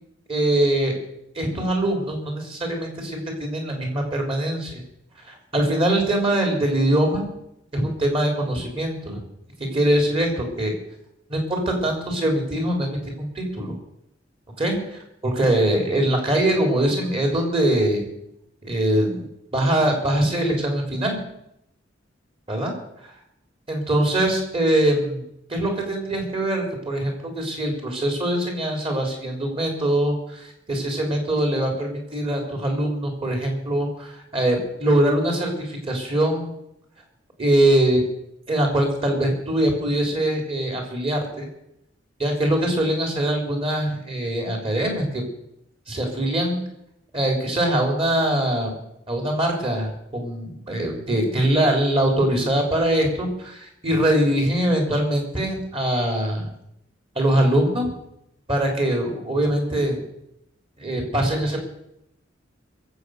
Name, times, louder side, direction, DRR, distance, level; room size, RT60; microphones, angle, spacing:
voice 1, 0.3-0.9 1.4-4.8 5.2-7.3 7.7-9.2 9.6-10.7 11.3-13.7 14.6-18.1 18.6-19.2 19.5-21.2 22.5-22.7 23.0-23.1 23.7-25.2 25.5-36.5 37.4-38.0 38.5-41.5 42.2-45.2 45.9-46.6 47.1-48.7 49.1-56.5 57.2-57.9 58.5-60.0 60.8-61.6, right 1 dB, 30° right, 2 dB, 3.8 m, -22 dB
21.5 x 8.0 x 6.5 m, 0.79 s
head